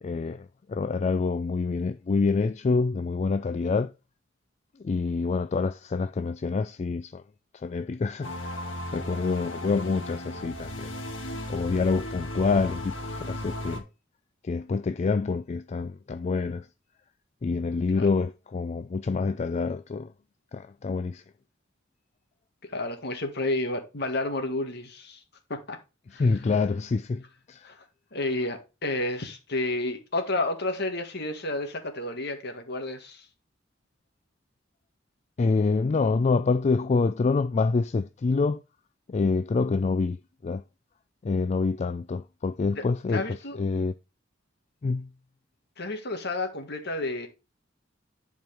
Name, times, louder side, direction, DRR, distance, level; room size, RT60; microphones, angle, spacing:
voice 1, 0.0-3.9 4.8-7.2 7.5-10.9 11.5-13.8 14.4-16.7 17.4-20.1 20.5-21.2 26.1-27.2 27.5-27.7 35.4-38.6 39.1-40.6 41.2-43.9 44.8-45.1, left 4 dB, 35° left, 0.3 m, -27 dB
sound 1, 8.2-13.8, left 1 dB, 80° left, 1.9 m, -36 dB
voice 2, 22.7-25.2 25.5-25.8 26.1-26.2 27.6-27.8 28.1-33.2 42.8-43.6 45.8-47.3, left 2 dB, 60° left, 1.8 m, -31 dB
10.5 x 4.6 x 3.4 m
head